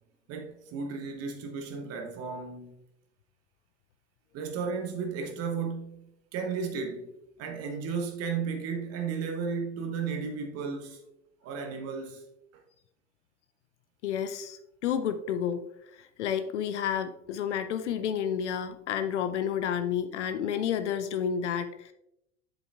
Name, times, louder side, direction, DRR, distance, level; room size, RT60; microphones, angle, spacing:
voice 1, 0.3-2.7 4.3-7.1 7.4-11.0 11.4-12.2 12.5-12.6, right 5 dB, 40° right, 1.0 m, -34 dB
voice 2, 14.0-15.6 15.9-21.9, left 8 dB, 65° left, 0.6 m, -30 dB
7.7 x 7.3 x 2.4 m
figure-of-eight pair, 75°, 38 cm